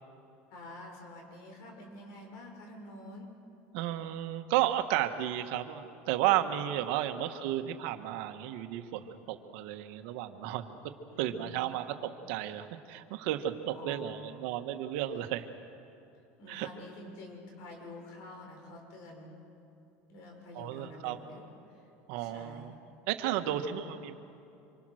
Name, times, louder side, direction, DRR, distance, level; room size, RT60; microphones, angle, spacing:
voice 1, 0.5-3.3 7.1-7.4 11.1-11.8 13.7-14.4 16.4-19.4 20.1-21.9 22.1-22.7 23.4-24.0, left 2 dB, 70° left, 2 dB, 6.3 m, -48 dB
voice 2, 3.7-10.8 11.2-15.5 16.5-16.7 20.5-21.2 22.1-22.7 23.1-24.2, right 12 dB, 75° right, 7 dB, 1.5 m, -33 dB
26.0 x 24.5 x 6.5 m, 2.7 s
supercardioid pair, 125°, 6 cm